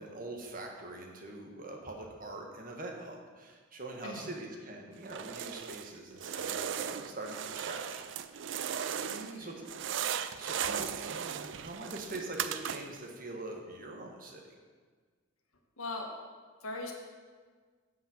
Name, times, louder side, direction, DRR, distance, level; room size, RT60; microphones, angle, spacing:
voice 1, 0.0-8.0 9.0-9.6 10.4-14.5, right 2 dB, 40° right, 1 dB, 1.5 m, -43 dB
voice 2, 4.0-4.4 9.0-9.7 15.8-16.1 16.6-16.9, left 2 dB, 90° left, 2 dB, 1.7 m, -40 dB
sound 1, 5.0-5.9 6.2-9.4 9.6-13.1, right 8 dB, 60° right, 0.4 m, -37 dB
9.8 x 5.6 x 7.5 m, 1.5 s
head